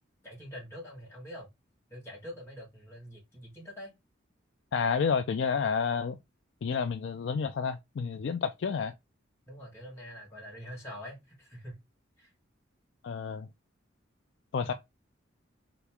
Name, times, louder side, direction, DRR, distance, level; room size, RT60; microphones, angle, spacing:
voice 1, 0.2-1.5 1.9-3.9 9.5-11.8 12.2-12.3 14.6-14.7, equal, 10° left, 1.8 m, -45 dB
voice 2, 4.7-6.2 6.6-8.9 13.0-13.5 14.5-14.7, left 6 dB, 60° left, 0.3 m, -30 dB
4.1 x 3.0 x 3.4 m
head